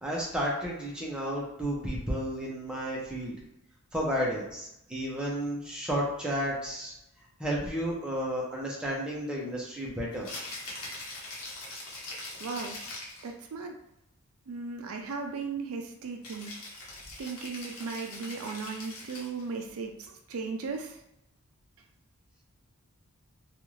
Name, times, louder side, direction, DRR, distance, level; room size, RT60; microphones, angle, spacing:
voice 1, 0.0-3.4 3.9-6.9 7.4-10.3, equal, 5° right, -4 dB, 0.6 m, -32 dB
Rattle (instrument), 10.1-13.3 16.2-19.5, left 2 dB, 90° left, 0.9 m, -42 dB
voice 2, 12.4-12.8 13.2-13.8 14.5-16.6 17.2-21.0, right 4 dB, 65° right, 3 dB, 0.4 m, -36 dB
2.6 x 2.4 x 3.1 m, 0.84 s
head